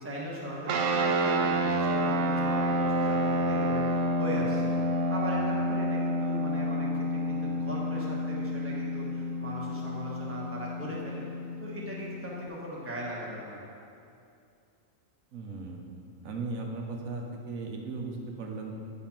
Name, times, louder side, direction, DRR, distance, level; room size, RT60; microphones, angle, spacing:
voice 1, 0.0-4.7 5.1-11.3 11.6-13.6, equal, 10° right, -5 dB, 1.3 m, -39 dB
sound 1, 0.7-12.5, equal, 70° right, 0.9 m, -29 dB
voice 2, 15.3-15.9 16.2-18.7, right 3 dB, 85° right, 1 dB, 1.3 m, -37 dB
8.9 x 4.2 x 5.8 m, 2.5 s
omnidirectional pair, 1.4 m